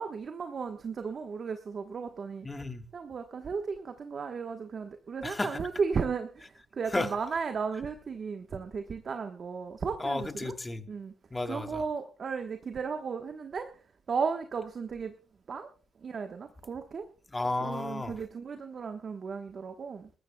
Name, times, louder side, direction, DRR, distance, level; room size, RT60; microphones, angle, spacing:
voice 1, 0.0-2.5 2.9-10.5 10.9-11.1 11.4-13.7 14.1-15.1 15.5-15.7 16.0-17.1 17.6-20.1, right 5 dB, 45° right, 1.1 m, -35 dB
voice 2, 2.4-2.8 5.2-5.6 6.9-7.1 10.0-10.9 11.3-11.8 17.3-18.2, left 2 dB, 20° left, 1.4 m, -33 dB
29.0 x 13.5 x 2.2 m
cardioid pair, 90°, 0 cm